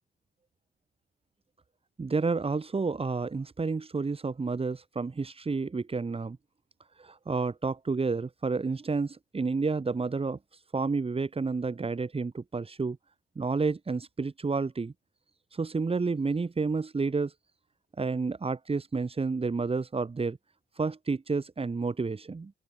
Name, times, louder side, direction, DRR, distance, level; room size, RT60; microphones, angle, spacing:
voice 1, 2.0-6.4 7.0-10.4 10.7-13.0 13.4-14.9 15.5-17.3 18.0-20.4 20.8-22.5, right 4 dB, 30° right, 7.5 m, -30 dB
open air
cardioid pair, 90°, 20 cm